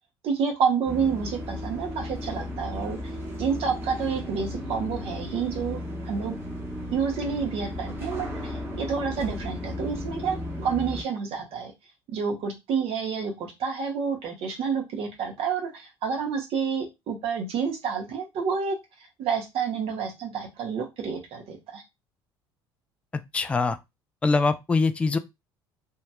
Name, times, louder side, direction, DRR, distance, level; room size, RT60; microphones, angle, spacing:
voice 1, 0.2-3.0 3.4-6.4 6.9-11.7 12.1-18.7 19.2-21.8, right 6 dB, 50° right, 1.1 m, -29 dB
sound 1, 0.8-11.0, left 1 dB, 15° right, 1.3 m, -35 dB
voice 2, 23.3-23.8 24.2-25.2, left 3 dB, 10° left, 0.3 m, -23 dB
3.0 x 2.8 x 2.3 m
figure-of-eight pair, 60°, 13 cm